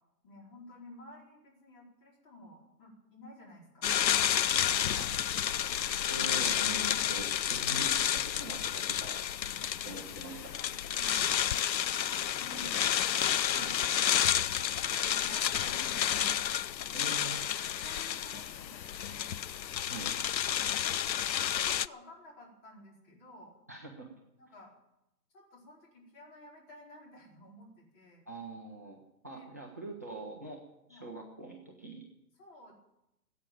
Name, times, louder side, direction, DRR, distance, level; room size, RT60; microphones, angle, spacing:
voice 1, 0.2-4.9 10.5-11.3 12.1-12.9 14.5-16.4 17.0-17.2 17.8-19.4 20.5-20.8 21.3-23.6 24.4-24.7 25.3-28.2 29.2-29.5 30.9-31.1 32.4-32.7, left 1 dB, 25° left, -2 dB, 4.6 m, -52 dB
sound 1, 3.8-21.9, left 10 dB, 85° left, 0.6 m, -30 dB
voice 2, 6.1-9.2 9.8-10.5 13.5-13.7 16.9-17.5 19.9-20.1 23.7-24.1 28.3-30.6 30.9-32.0, right 2 dB, 10° right, 0 dB, 0.5 m, -43 dB
15.5 x 8.7 x 9.1 m, 0.86 s
hypercardioid pair, 145°, 50 cm